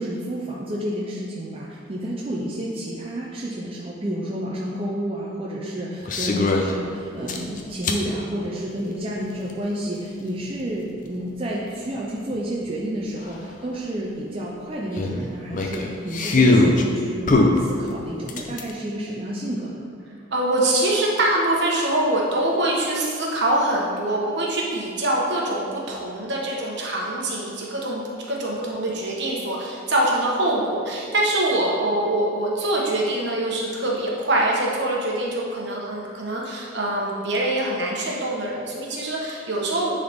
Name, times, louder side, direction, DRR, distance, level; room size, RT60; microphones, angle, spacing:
voice 1, 0.0-19.9, right 1 dB, 30° right, -4 dB, 0.6 m, -30 dB
sound 1, 6.0-6.7 7.3-8.0 9.5-9.6 12.3-12.4 12.6-12.7 13.2-13.3 15.0-16.8 17.3-18.7, left 2 dB, 40° left, 0.5 m, -20 dB
voice 2, 20.3-28.0 28.3-39.9, right 1 dB, 60° right, -3 dB, 1.2 m, -24 dB
9.8 x 4.0 x 3.5 m, 2.5 s
head